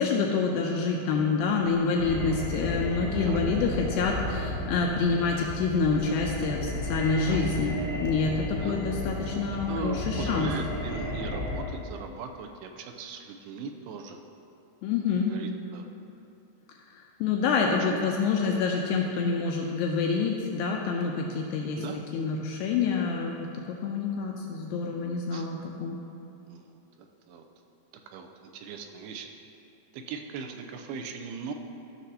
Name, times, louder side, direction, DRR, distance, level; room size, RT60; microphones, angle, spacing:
voice 1, 0.0-10.5 14.8-15.4 17.2-21.8 22.1-26.0, left 4 dB, 80° left, 0 dB, 2.2 m, -27 dB
sound 1, 2.0-11.6, left 1 dB, 40° right, 2.2 m, -33 dB
voice 2, 3.1-3.4 7.3-7.4 8.6-8.8 9.7-14.2 15.2-15.9 17.7-18.0 21.8-22.0 25.3-25.5 26.5-27.5 28.1-29.3 29.9-31.5, right 5 dB, 85° right, 5 dB, 2.4 m, -39 dB
13.5 x 6.6 x 2.8 m, 2.7 s
omnidirectional pair, 4.5 m